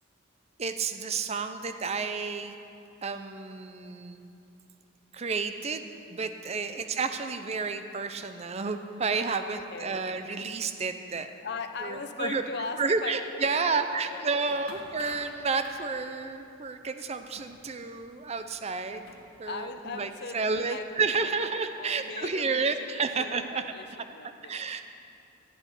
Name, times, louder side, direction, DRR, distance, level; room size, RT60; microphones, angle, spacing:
voice 1, 0.6-2.5 3.0-4.2 5.1-11.3 11.8-12.4 12.8-19.1 19.4-23.6 24.4-24.8, right 4 dB, 30° right, 9 dB, 0.5 m, -31 dB
voice 2, 6.6-6.9 9.4-10.0 11.4-14.7 19.4-22.9 23.1-23.8 24.1-24.6, left 4 dB, 55° left, 8 dB, 0.7 m, -40 dB
sound 1, 14.5-19.5, left 2 dB, 75° left, 2.5 m, -52 dB
15.0 x 8.6 x 5.3 m, 2.7 s
head